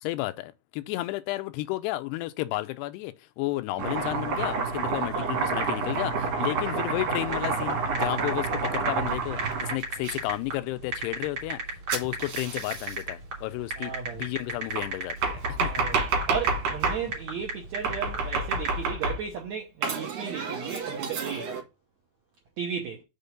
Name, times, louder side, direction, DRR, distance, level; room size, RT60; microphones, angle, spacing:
voice 1, 0.0-11.6 11.9-15.7, left 18 dB, 85° left, 2.7 m, -32 dB
Domestic sounds home sounds, 3.8-10.2 11.9-13.0 14.8-17.0 17.8-19.4 19.8-21.6, right 4 dB, 60° right, 3.4 m, -29 dB
voice 2, 5.0-5.5 13.8-14.2 15.6-16.0 16.3-21.5 22.6-23.0, right 6 dB, 75° right, 1.6 m, -35 dB
sound 1, 7.3-18.8, right 3 dB, 35° right, 2.9 m, -34 dB
6.9 x 4.5 x 5.2 m
omnidirectional pair, 4.7 m